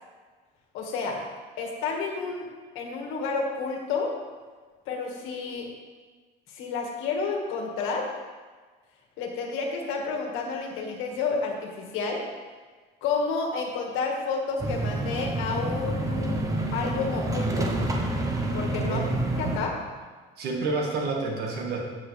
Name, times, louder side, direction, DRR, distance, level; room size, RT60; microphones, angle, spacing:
voice 1, 0.7-1.2 1.6-2.5 2.7-4.1 4.9-5.7 6.5-8.1 9.2-12.2 13.0-16.4 16.7-17.7 18.5-19.0 19.4-19.7, left 4 dB, 80° left, 1 dB, 1.7 m, -30 dB
sound 1, 14.6-19.6, right 2 dB, 15° right, 0.7 m, -28 dB
voice 2, 18.8-19.1 20.4-21.8, right 3 dB, 50° right, 0 dB, 1.7 m, -29 dB
11.0 x 7.9 x 3.3 m, 1.4 s
cardioid pair, 175°, 21 cm